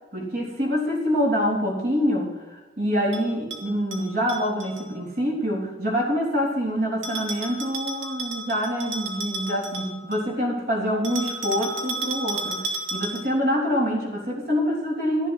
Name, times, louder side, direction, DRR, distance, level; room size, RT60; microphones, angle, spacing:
voice 1, 0.1-15.3, equal, 55° right, -1 dB, 3.6 m, -26 dB
Bell, 3.1-4.9 7.0-10.3 11.0-13.4, right 2 dB, 70° right, 2.2 m, -33 dB
13.0 x 7.5 x 7.9 m, 1.2 s
head